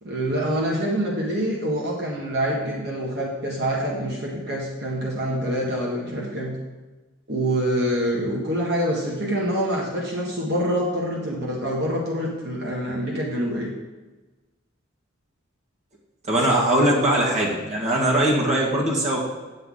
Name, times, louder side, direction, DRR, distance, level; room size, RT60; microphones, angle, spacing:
voice 1, 0.0-6.5 7.3-13.7, equal, 50° right, -3 dB, 1.7 m, -26 dB
voice 2, 16.3-19.2, right 1 dB, 35° right, -3 dB, 1.8 m, -21 dB
9.0 x 8.1 x 3.9 m, 1.2 s
head